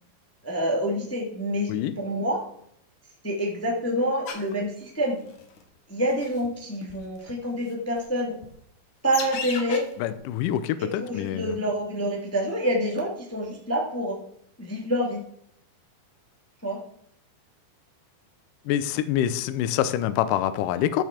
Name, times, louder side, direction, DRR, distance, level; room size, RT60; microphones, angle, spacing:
voice 1, 0.4-2.4 3.2-5.2 5.9-8.4 9.0-9.8 10.8-14.2 14.6-15.2 16.6-16.8, equal, 10° left, -1 dB, 0.8 m, -27 dB
sound 1, 4.2-4.5 5.3-5.6 6.1-6.5 6.9-7.0 7.3-7.4 8.0-8.1 8.4-8.5 9.1-9.8 10.1-10.2, left 6 dB, 60° left, 2.7 m, -34 dB
voice 2, 10.0-11.5 18.7-21.0, left 11 dB, 80° left, 13 dB, 1.9 m, -26 dB
13.5 x 6.7 x 5.0 m, 0.70 s
omnidirectional pair, 4.5 m